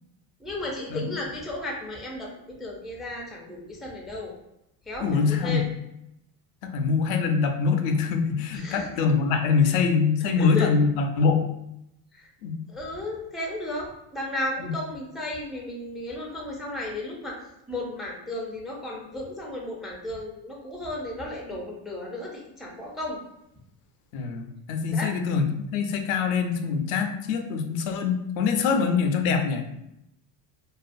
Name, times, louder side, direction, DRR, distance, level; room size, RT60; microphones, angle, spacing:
voice 1, 0.4-4.3 4.8-5.6 8.5-9.1 10.4-10.7 12.1-12.3 12.7-17.4 17.7-23.2 24.9-25.1, left 1 dB, ahead, -2 dB, 0.3 m, -34 dB
voice 2, 5.0-5.6 6.6-11.5 12.4-12.6 14.6-14.7 24.1-29.6, left 5 dB, 85° left, 5 dB, 0.5 m, -24 dB
2.4 x 2.3 x 2.5 m, 0.82 s
supercardioid pair, 105°, 42 cm